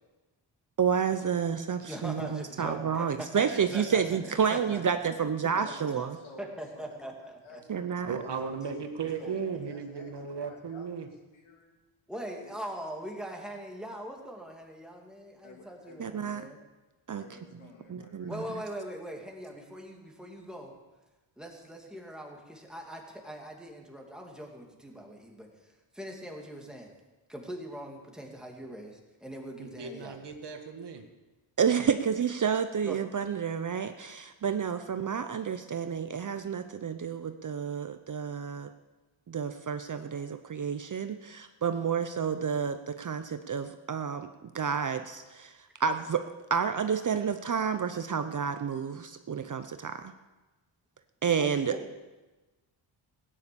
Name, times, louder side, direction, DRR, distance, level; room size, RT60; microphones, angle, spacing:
voice 1, 0.8-6.2 7.7-8.2 16.0-16.5 17.1-17.2 17.9-18.4 31.6-38.7 39.3-44.3 44.5-46.2 46.5-50.1 51.2-51.8, right 7 dB, 40° right, 9 dB, 0.7 m, -30 dB
voice 2, 1.8-3.1 3.3-5.0 5.6-5.7 6.4-7.6 9.0-9.4 12.1-16.6 18.3-20.7 21.4-26.9 27.3-30.2 32.9-33.0 51.4-51.9, equal, ahead, 0 dB, 2.5 m, -42 dB
voice 3, 5.5-8.7 9.2-9.4 9.7-11.7 12.4-12.5 15.4-16.4 17.1-18.6, left 3 dB, 75° left, 1 dB, 3.1 m, -53 dB
voice 4, 8.1-11.1 29.6-31.0, right 6 dB, 55° right, 5 dB, 1.8 m, -36 dB
16.0 x 10.0 x 6.9 m, 1.2 s
wide cardioid pair, 115°, 48 cm